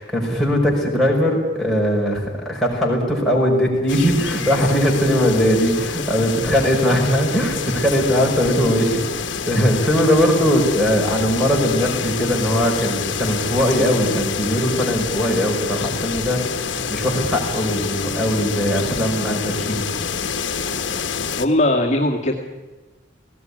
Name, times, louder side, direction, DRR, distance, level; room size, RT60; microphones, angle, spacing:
voice 1, 0.0-19.9, equal, ahead, -4 dB, 5.5 m, -20 dB
sound 1, 3.9-21.5, left 5 dB, 70° left, 1.3 m, -27 dB
voice 2, 21.3-22.3, left 1 dB, 35° left, -3 dB, 2.0 m, -19 dB
19.0 x 17.0 x 9.9 m, 1.2 s
head